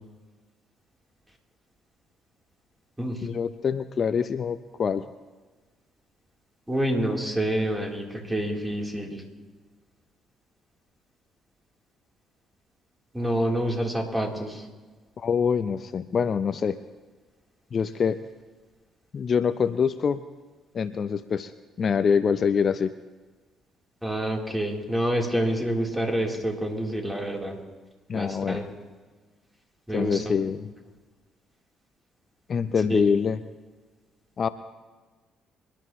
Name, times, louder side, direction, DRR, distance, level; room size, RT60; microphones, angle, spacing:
voice 1, 3.2-5.1 15.2-16.8 17.7-18.2 19.1-20.2 20.7-21.5 21.8-22.9 28.1-28.6 29.9-30.7 32.5-33.4 34.4-34.5, left 6 dB, 50° left, 13 dB, 0.6 m, -25 dB
voice 2, 6.7-9.2 13.1-14.6 24.0-27.6 28.1-28.7 29.9-30.3 32.9-33.2, right 1 dB, 15° right, 0 dB, 3.6 m, -27 dB
26.5 x 12.0 x 3.1 m, 1.3 s
hypercardioid pair, 50°, 0 cm